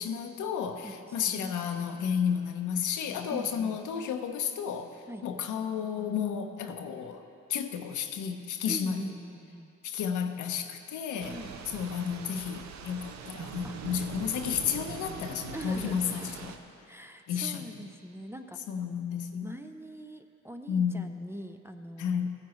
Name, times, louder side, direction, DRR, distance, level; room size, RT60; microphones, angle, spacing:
voice 1, 0.0-7.2 7.5-9.1 9.8-11.4 11.7-16.5 17.3-17.8 18.7-19.5 20.7-21.1 22.0-22.3, left 7 dB, 75° left, 6 dB, 0.8 m, -32 dB
voice 2, 0.8-1.5 3.3-3.8 5.1-5.2 6.6-6.8 8.6-9.7 11.2-11.5 13.6-13.8 15.5-16.5 16.8-18.6 19.4-22.3, right 1 dB, 10° right, 5 dB, 0.5 m, -43 dB
Thunder / Rain, 11.2-16.6, right 6 dB, 65° right, 0.7 m, -42 dB
15.5 x 9.8 x 3.1 m, 2.6 s
cardioid pair, 90°, 30 cm